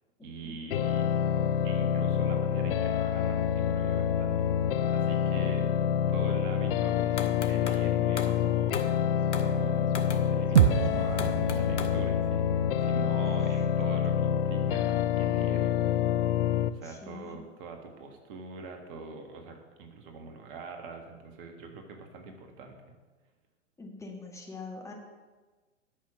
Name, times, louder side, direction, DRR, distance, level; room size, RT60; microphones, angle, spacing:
voice 1, 0.2-1.1 1.6-4.4 4.7-5.6 6.1-8.8 9.3-15.9 16.7-22.9, right 4 dB, 45° right, 4 dB, 1.7 m, -44 dB
sound 1, 0.7-16.7, left 9 dB, 50° left, 0.6 m, -27 dB
sound 2, 7.2-7.9 8.2-8.4 8.7-9.0 9.3-9.5 9.9-10.3 10.6-10.8 11.2-12.0, left 5 dB, 70° left, 1.3 m, -38 dB
sound 3, 10.6-14.9, right 10 dB, 65° right, 0.6 m, -29 dB
voice 2, 16.8-17.4 23.8-24.9, left 3 dB, 10° left, 0 dB, 1.5 m, -44 dB
9.3 x 6.4 x 7.3 m, 1.3 s
figure-of-eight pair, 105°, 37 cm